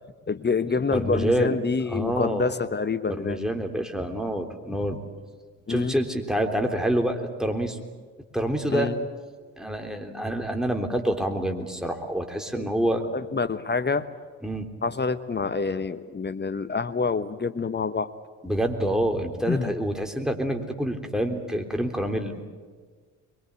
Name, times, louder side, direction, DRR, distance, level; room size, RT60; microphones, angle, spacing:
voice 1, 0.3-3.4 5.7-6.0 8.7-9.0 12.5-12.7 13.1-14.1 14.8-18.1 19.5-19.7, left 4 dB, 25° left, 12 dB, 1.1 m, -27 dB
voice 2, 0.9-1.6 1.9-2.5 3.1-5.0 5.7-7.8 8.3-8.9 9.6-13.0 14.4-14.7 18.4-22.4, right 1 dB, ahead, 5 dB, 3.5 m, -27 dB
23.5 x 23.0 x 8.3 m, 1.5 s
hypercardioid pair, 50°, 40 cm